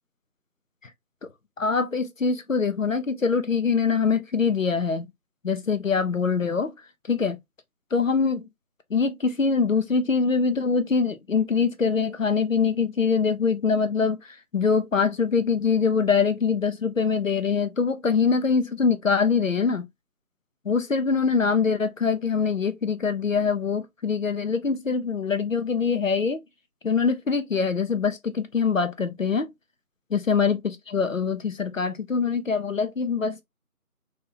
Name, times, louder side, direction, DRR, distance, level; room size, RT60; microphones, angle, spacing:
voice 1, 1.6-5.1 5.4-6.7 7.1-7.4 7.9-8.5 8.9-14.2 14.5-19.8 20.6-26.4 26.8-29.5 30.1-33.4, left 5 dB, 60° left, 0.7 m, -23 dB
2.7 x 2.7 x 3.9 m
figure-of-eight pair, 175°, 45 cm